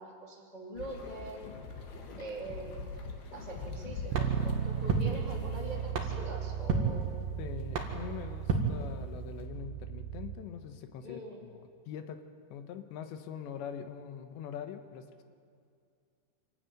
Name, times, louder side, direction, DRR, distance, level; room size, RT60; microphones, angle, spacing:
voice 1, 0.0-1.5 2.2-3.0 3.3-7.2 11.0-11.4, right 1 dB, 20° left, -2 dB, 1.0 m, -43 dB
sound 1, 0.8-5.9, left 3 dB, 65° left, 3.6 m, -43 dB
sound 2, 4.1-9.5, right 5 dB, 55° right, 3.2 m, -34 dB
Bass guitar, 4.1-10.4, right 8 dB, 90° right, 3.2 m, -36 dB
voice 2, 7.4-11.6 11.9-12.2 12.5-15.2, left 8 dB, 80° left, 7 dB, 3.2 m, -43 dB
27.0 x 13.0 x 9.2 m, 2.2 s
omnidirectional pair, 5.2 m